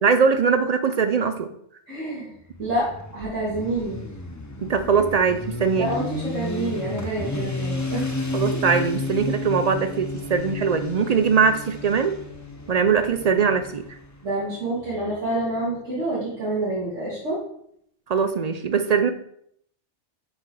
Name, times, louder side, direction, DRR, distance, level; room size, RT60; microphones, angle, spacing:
voice 1, 0.0-1.5 4.6-5.9 8.3-12.2 12.7-13.8 18.1-19.1, right 5 dB, 55° right, 9 dB, 0.4 m, -21 dB
voice 2, 1.9-4.0 5.7-8.1 14.2-17.4, right 2 dB, 80° right, -9 dB, 2.8 m, -28 dB
Motorcycle, 2.5-14.2, left 2 dB, 20° left, 0.6 m, -32 dB
7.3 x 4.8 x 4.8 m, 0.71 s
omnidirectional pair, 1.2 m